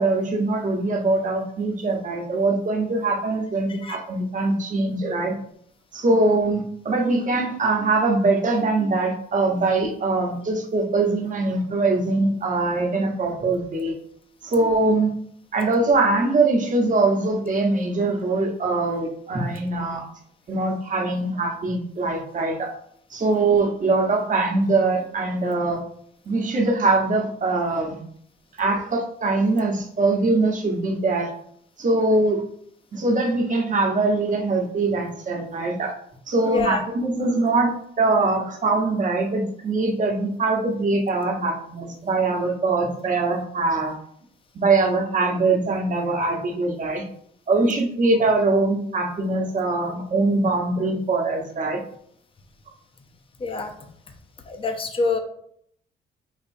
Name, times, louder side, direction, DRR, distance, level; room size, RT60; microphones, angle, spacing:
voice 1, 0.0-5.3 5.9-13.9 14.4-15.1 15.5-20.0 20.5-22.7 23.1-25.8 26.2-28.0 28.6-31.3 31.8-32.4 32.9-35.9 36.3-43.9 44.5-47.0 47.5-51.8, right 3 dB, 40° right, 1 dB, 1.0 m, -22 dB
voice 2, 36.5-36.8 53.4-53.7 54.5-55.2, left 4 dB, 25° left, 5 dB, 0.6 m, -25 dB
5.1 x 3.0 x 2.6 m, 0.66 s
cardioid pair, 90°, 20 cm